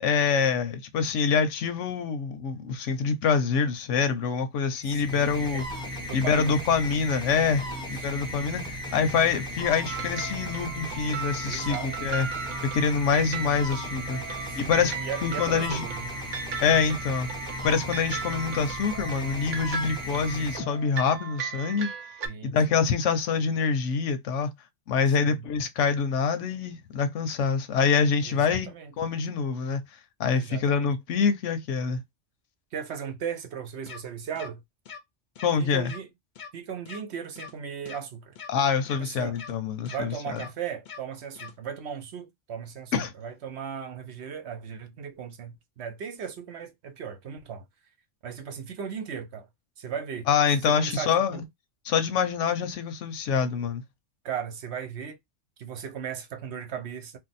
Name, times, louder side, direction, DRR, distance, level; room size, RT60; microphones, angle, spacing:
voice 1, 0.0-5.6 6.1-12.3 12.7-14.2 14.6-15.8 16.6-17.3 17.6-21.9 22.4-24.5 24.9-28.7 29.0-29.8 30.2-32.0 35.4-35.9 38.5-40.4 42.9-43.1 50.3-51.4 51.8-53.8, left 6 dB, 80° left, 1.0 m, -25 dB
sound 1, 4.7-21.2, equal, 5° left, 0.8 m, -36 dB
voice 2, 4.9-5.6 6.1-6.6 7.6-8.1 11.4-11.9 14.4-16.1 22.2-22.8 25.2-25.4 28.2-28.9 30.3-30.9 32.7-34.6 35.6-36.1 36.5-38.3 39.0-39.4 39.9-47.7 48.2-49.5 49.8-50.3 50.6-51.4 54.2-55.2 55.6-57.2, right 7 dB, 70° right, 0.9 m, -37 dB
sound 2, 9.8-22.3, right 6 dB, 85° right, 1.0 m, -37 dB
sound 3, 33.9-34.0 34.4-34.5 34.9-35.0 35.4-35.5 35.8-36.0 36.4-36.5 36.9-37.0 37.4-37.5 37.9-38.0 38.4-38.5 38.9-39.0 39.4-39.5 39.9-40.0 40.4-40.5 40.9-41.0 41.4-41.5, left 7 dB, 50° left, 0.6 m, -41 dB
2.6 x 2.1 x 4.0 m
omnidirectional pair, 1.2 m